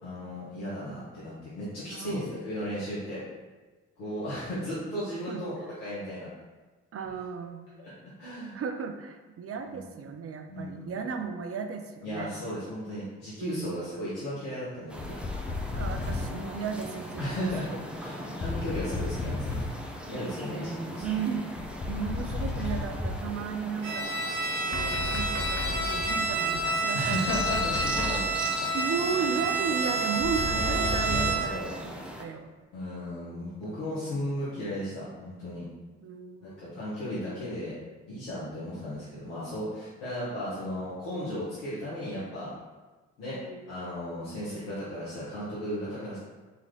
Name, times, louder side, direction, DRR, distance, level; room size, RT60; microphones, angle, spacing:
voice 1, 0.0-3.2 4.0-6.3 7.8-7.9 8.2-8.6 9.7-9.8 10.5-11.0 12.0-15.2 17.2-17.7 18.0-19.6 20.1-21.0 26.9-28.3 28.6-28.7 29.2-29.4 30.4-31.7 32.7-35.6 36.4-37.7 38.1-42.5 43.2-43.4 43.7-46.2, equal, 75° left, -11 dB, 1.4 m, -35 dB
voice 2, 1.9-2.4 5.3-5.4 6.9-7.7 8.5-12.4 13.4-13.8 15.7-17.8 20.9-24.1 24.6-27.8 28.7-32.5 33.3-33.4 33.7-33.9 34.6-34.8 36.0-36.8 40.5-41.0 43.3-43.9 44.4-44.8, right 5 dB, 45° right, 6 dB, 0.6 m, -35 dB
sound 1, 14.9-32.2, equal, 5° right, 0.7 m, -39 dB
sound 2, 15.0-16.5 18.4-19.9 21.6-23.1 24.7-25.9 27.3-28.3 30.2-31.5, left 3 dB, 35° left, 0.7 m, -34 dB
Bowed string instrument, 23.8-31.7, right 3 dB, 65° right, 1.2 m, -29 dB
4.1 x 3.0 x 3.8 m, 1.3 s
hypercardioid pair, 45°, 33 cm